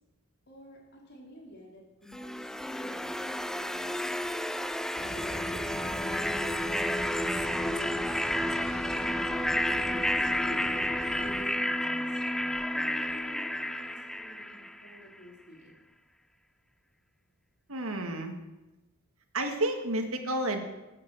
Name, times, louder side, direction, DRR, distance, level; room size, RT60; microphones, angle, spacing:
voice 1, 0.5-4.3 5.0-9.0 9.5-12.2 12.7-15.8, left 1 dB, 55° left, -2 dB, 4.3 m, -51 dB
sound 1, 2.1-15.0, left 1 dB, ahead, 0.4 m, -31 dB
sound 2, 5.0-11.4, left 1 dB, 35° left, 2.8 m, -39 dB
voice 2, 17.7-18.3 19.3-20.6, right 1 dB, 75° right, 5 dB, 2.0 m, -30 dB
14.5 x 8.8 x 7.8 m, 1.0 s
head